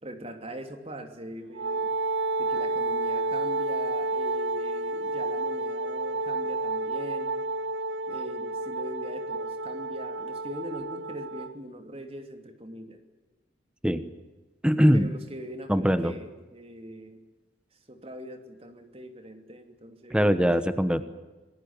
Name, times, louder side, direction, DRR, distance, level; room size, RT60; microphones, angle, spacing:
voice 1, 0.0-1.9 2.4-7.4 8.1-13.0 14.9-17.2 17.9-20.5, right 1 dB, 30° right, 6 dB, 3.0 m, -42 dB
Wind instrument woodwind instrument, 1.6-11.5, right 2 dB, 90° right, 0.9 m, -30 dB
voice 2, 14.6-15.1 15.7-16.2 20.1-21.1, equal, 5° right, 11 dB, 1.1 m, -22 dB
27.5 x 18.5 x 9.1 m, 1.2 s
head